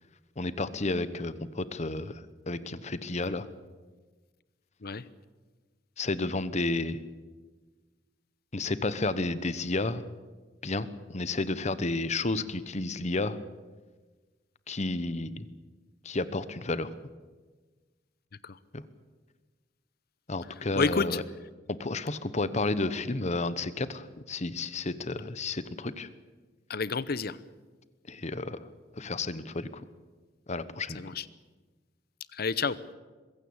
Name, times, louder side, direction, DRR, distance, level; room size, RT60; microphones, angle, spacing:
voice 1, 0.4-3.5 6.0-7.0 8.5-10.0 10.6-13.4 14.7-15.5 16.0-16.9 18.7-18.8 20.3-21.2 21.7-26.1 28.1-28.7 29.0-29.7 30.5-31.0, left 2 dB, 40° left, 14 dB, 1.0 m, -31 dB
voice 2, 20.8-21.2 26.7-27.4 30.9-31.3 32.3-32.8, left 4 dB, 55° left, 17 dB, 0.8 m, -29 dB
22.0 x 16.0 x 8.7 m, 1.3 s
head